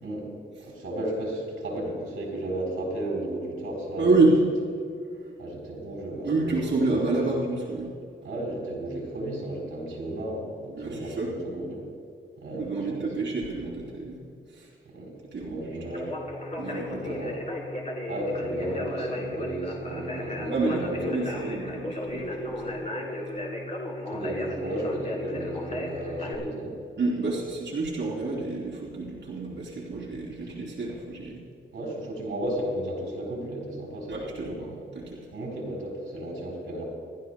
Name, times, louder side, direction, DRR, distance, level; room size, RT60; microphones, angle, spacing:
voice 1, 0.6-4.1 5.4-7.2 8.2-11.8 12.4-13.4 14.9-15.1 15.4-16.2 17.0-17.5 18.1-21.4 24.1-26.8 31.7-34.8 35.3-36.9, right 1 dB, 75° right, -2 dB, 3.7 m, -34 dB
voice 2, 4.0-4.4 5.0-5.3 6.2-7.9 10.7-11.3 12.5-14.2 14.5-14.7 15.3-15.8 16.6-17.2 20.5-22.7 27.0-31.4 34.1-34.7 34.9-35.2, right 3 dB, 55° right, -6 dB, 2.9 m, -28 dB
Conversation, 15.8-26.3, left 1 dB, 35° left, 1.8 m, -35 dB
28.5 x 12.0 x 2.2 m, 2.4 s
wide cardioid pair, 165°, 21 cm